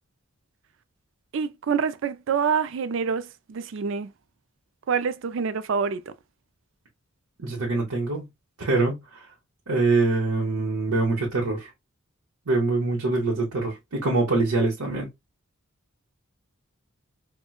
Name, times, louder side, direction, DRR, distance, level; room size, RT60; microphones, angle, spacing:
voice 1, 1.3-4.1 4.9-6.0, right 6 dB, 55° right, 0.3 m, -26 dB
voice 2, 7.4-8.3 8.6-9.3 9.7-11.7 12.5-15.1, right 3 dB, 90° right, 1.0 m, -24 dB
4.4 x 2.2 x 2.3 m
head